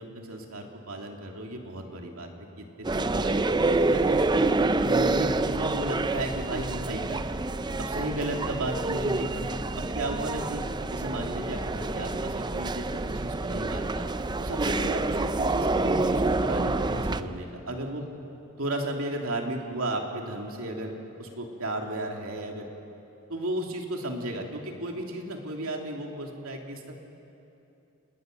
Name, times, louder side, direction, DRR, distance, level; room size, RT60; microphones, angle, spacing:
voice 1, 0.0-4.1 4.8-7.4 7.8-10.6 10.9-14.1 14.4-18.1 18.6-22.7 23.3-27.0, right 1 dB, 70° right, 1 dB, 2.8 m, -34 dB
sound 1, 2.8-17.2, right 2 dB, 20° right, 0.5 m, -27 dB
29.5 x 20.0 x 6.7 m, 2.8 s
head